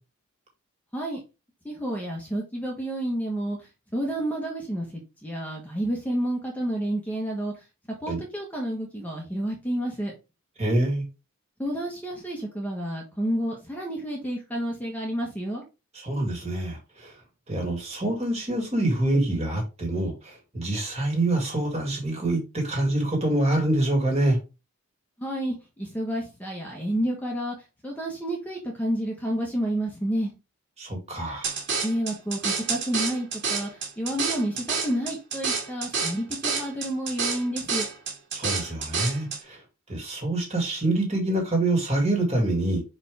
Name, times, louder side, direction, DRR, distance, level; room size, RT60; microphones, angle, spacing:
voice 1, 1.6-7.5 8.0-10.1 11.6-15.6 25.2-27.5 27.8-30.3 31.8-37.9, right 1 dB, 5° left, 1.3 m, -30 dB
voice 2, 10.6-11.0 15.9-17.1 17.5-24.4 30.8-31.6 38.3-39.6 39.9-42.8, right 1 dB, 30° right, 2.4 m, -26 dB
sound 1, 31.4-39.4, right 5 dB, 55° right, 2.3 m, -29 dB
5.4 x 4.9 x 3.5 m
head